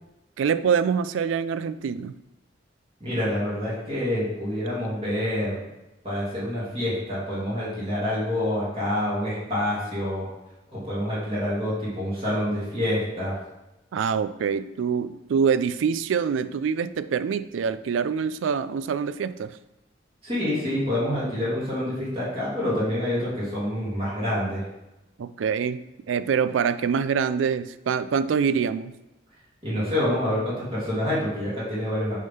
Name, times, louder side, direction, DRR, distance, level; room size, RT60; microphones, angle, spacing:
voice 1, 0.4-2.1 13.9-19.5 25.2-28.9, right 6 dB, 85° right, 13 dB, 0.3 m, -25 dB
voice 2, 3.0-5.7 6.0-10.3 10.7-13.4 20.2-24.6 29.6-32.2, left 1 dB, 30° right, -9 dB, 2.5 m, -27 dB
6.2 x 3.7 x 5.6 m, 0.97 s
head